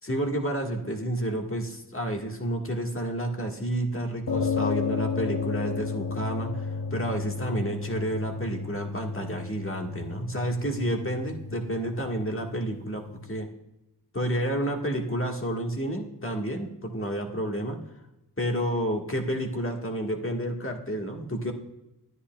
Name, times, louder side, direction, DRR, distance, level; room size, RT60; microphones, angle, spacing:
voice 1, 0.1-13.5 14.1-17.8 18.4-21.5, right 1 dB, 30° left, 2 dB, 1.5 m, -30 dB
sound 1, 4.3-13.4, left 4 dB, 60° left, 0.9 m, -32 dB
11.0 x 9.8 x 2.3 m, 0.91 s
cardioid pair, 40°, 40 cm